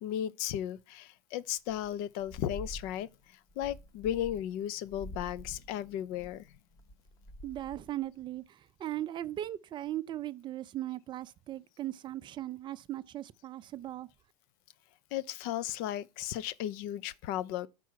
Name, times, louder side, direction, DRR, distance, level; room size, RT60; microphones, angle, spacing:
voice 1, 0.0-3.1 3.6-6.5 15.1-17.7, left 11 dB, 50° left, 0.5 m, -35 dB
sound 1, 1.7-1.9 2.2-3.1 3.5-4.6 4.9-8.1, left 1 dB, 20° left, 0.8 m, -47 dB
voice 2, 7.4-14.1, right 13 dB, 25° right, 0.4 m, -38 dB
6.0 x 4.6 x 6.2 m
supercardioid pair, 120°, 19 cm